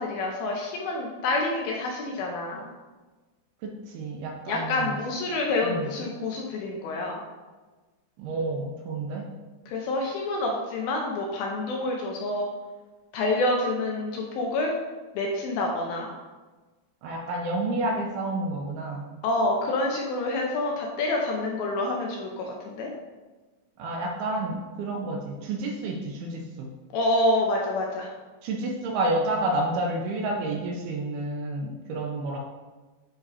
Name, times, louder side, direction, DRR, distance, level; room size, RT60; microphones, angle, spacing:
voice 1, 0.0-2.6 4.5-7.2 9.7-12.5 13.1-14.7 15.2-16.1 19.2-22.9 26.9-28.1, left 2 dB, 75° left, 0 dB, 2.3 m, -27 dB
voice 2, 3.6-5.0 5.6-5.9 8.2-9.3 17.0-19.0 23.8-26.7 28.4-32.4, right 2 dB, 75° right, 1 dB, 2.4 m, -30 dB
10.0 x 3.9 x 4.1 m, 1.3 s
omnidirectional pair, 5.0 m